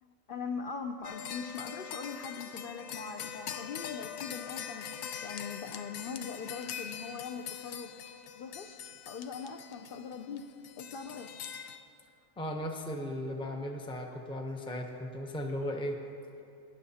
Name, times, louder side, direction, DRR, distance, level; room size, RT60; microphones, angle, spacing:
voice 1, 0.0-7.9 8.3-8.8 9.1-10.4 10.8-11.3, left 5 dB, 65° left, 4 dB, 0.5 m, -41 dB
sound 1, 1.0-11.8, left 8 dB, 90° left, 1.0 m, -43 dB
voice 2, 12.4-16.0, equal, 5° left, 3 dB, 0.5 m, -36 dB
18.5 x 10.5 x 2.8 m, 2.6 s
omnidirectional pair, 1.4 m